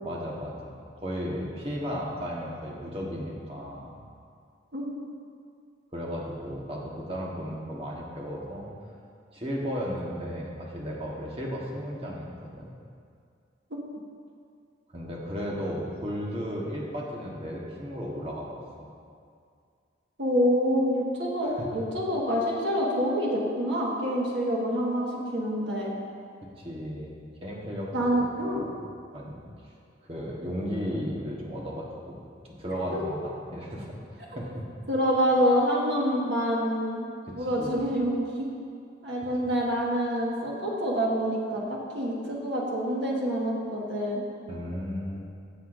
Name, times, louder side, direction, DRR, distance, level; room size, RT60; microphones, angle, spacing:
voice 1, 0.0-3.9 5.9-8.7 9.3-12.7 14.9-18.9 21.4-21.7 26.5-27.1 27.4-28.3 28.5-28.8 29.1-29.4 30.0-32.2 32.6-34.0 34.3-34.6 37.2-37.8 44.5-45.2, equal, 30° right, -3 dB, 1.3 m, -35 dB
voice 2, 20.2-25.9 27.9-28.6 32.9-33.2 34.9-37.1 37.3-38.5 39.0-44.2, equal, 70° right, -4 dB, 1.6 m, -27 dB
15.5 x 6.8 x 2.6 m, 2.3 s
head